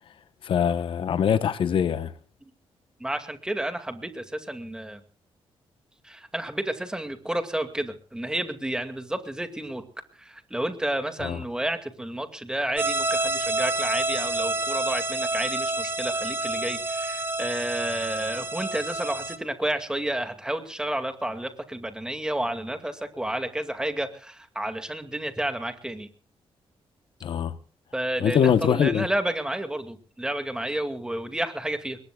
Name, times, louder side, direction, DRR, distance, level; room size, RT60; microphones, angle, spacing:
voice 1, 0.4-2.1 11.2-11.4 27.2-27.6 28.2-29.1, left 8 dB, 60° left, 1.1 m, -23 dB
voice 2, 3.0-5.0 6.0-9.8 10.2-26.1 27.9-32.0, right 1 dB, 5° right, 2.3 m, -31 dB
sound 1, 12.8-19.4, right 2 dB, 25° right, 2.2 m, -28 dB
26.5 x 21.5 x 2.4 m
cardioid pair, 135°, 10 cm